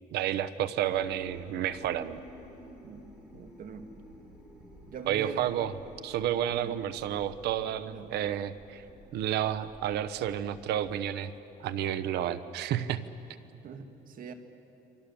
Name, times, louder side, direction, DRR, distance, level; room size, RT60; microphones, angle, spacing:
voice 1, 0.1-2.2 5.1-5.7 6.0-8.8 9.1-11.3 11.6-13.0, right 11 dB, 75° right, 13 dB, 1.1 m, -31 dB
sound 1, 0.7-10.9, left 1 dB, 5° right, 7.9 m, -52 dB
voice 2, 3.3-3.9 4.9-5.5 6.5-6.8 7.9-8.1 13.5-14.3, right 7 dB, 55° right, 7 dB, 2.0 m, -43 dB
28.0 x 24.5 x 7.0 m, 2.9 s
cardioid pair, 110°, 17 cm